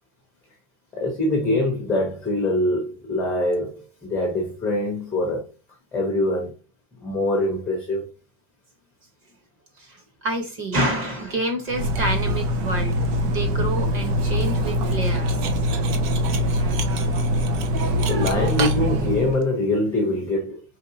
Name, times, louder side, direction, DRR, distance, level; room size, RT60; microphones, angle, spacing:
voice 1, 0.9-5.5 5.9-6.5 7.0-8.1 18.1-20.6, left 1 dB, 5° left, 0.5 m, -24 dB
voice 2, 9.8-13.0 13.2-15.4, right 1 dB, 30° right, 1.1 m, -28 dB
Cutlery silverware, 11.7-19.4, equal, 90° right, 1.0 m, -23 dB
4.7 x 3.3 x 2.7 m
cardioid pair, 180°, 46 cm